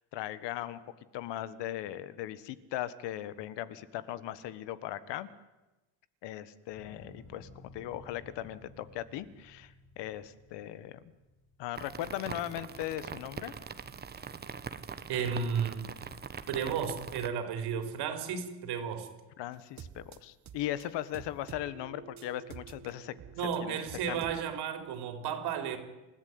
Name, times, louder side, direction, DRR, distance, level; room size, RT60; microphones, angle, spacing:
voice 1, 0.1-0.8 1.1-5.3 6.2-11.0 11.6-13.5 19.4-23.1 23.6-23.8 24.1-24.2, left 13 dB, 70° left, 15 dB, 1.5 m, -38 dB
sound 1, 6.7-13.0 13.4-14.0, left 1 dB, 40° left, 7.7 m, -56 dB
sound 2, 11.8-17.3, right 6 dB, 20° right, 1.2 m, -43 dB
voice 2, 15.1-15.8 16.5-19.1 23.4-25.8, right 7 dB, 60° right, 7 dB, 4.1 m, -33 dB
sound 3, 19.5-24.6, right 8 dB, 40° right, 1.6 m, -49 dB
28.5 x 14.0 x 9.5 m, 1.1 s
cardioid pair, 140°, 44 cm